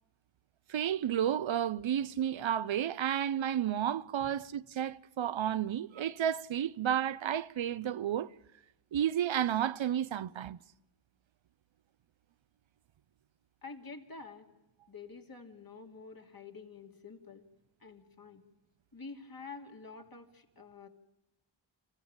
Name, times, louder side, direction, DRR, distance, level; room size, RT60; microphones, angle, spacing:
voice 1, 0.7-8.3 8.9-10.6, right 10 dB, 75° right, 0.7 m, -32 dB
voice 2, 13.6-14.5 14.9-17.4 17.8-18.4 18.9-20.9, left 4 dB, 45° left, 2.7 m, -48 dB
27.0 x 15.0 x 8.8 m
wide cardioid pair, 70°, 47 cm